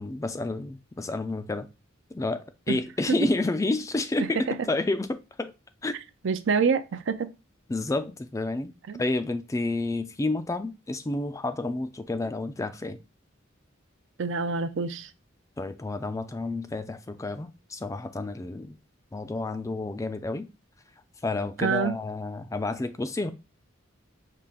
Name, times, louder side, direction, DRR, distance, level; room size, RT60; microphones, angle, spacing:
voice 1, 0.0-1.7 2.1-5.5 5.8-6.0 7.7-8.7 9.0-13.0 15.6-18.8 19.1-20.5 21.2-23.3, left 2 dB, 15° left, 0.3 m, -30 dB
voice 2, 6.2-7.1 8.9-9.0 14.2-15.1 21.6-21.9, right 5 dB, 65° right, 0.5 m, -26 dB
5.6 x 2.4 x 3.7 m
head